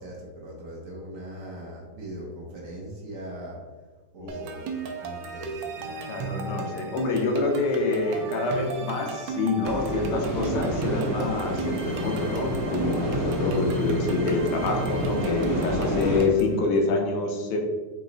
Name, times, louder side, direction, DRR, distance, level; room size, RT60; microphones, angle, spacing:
voice 1, 0.0-3.6 4.1-5.6, equal, 55° right, -2 dB, 1.1 m, -40 dB
sound 1, 4.3-16.6, right 4 dB, 90° right, 1.3 m, -34 dB
Bowed string instrument, 5.3-9.4, right 1 dB, 60° left, 0.5 m, -46 dB
voice 2, 6.1-17.6, left 3 dB, 80° left, 2 dB, 1.4 m, -26 dB
sound 2, 9.6-16.2, equal, 20° right, 0.6 m, -30 dB
4.0 x 3.1 x 3.8 m, 1.3 s
omnidirectional pair, 1.9 m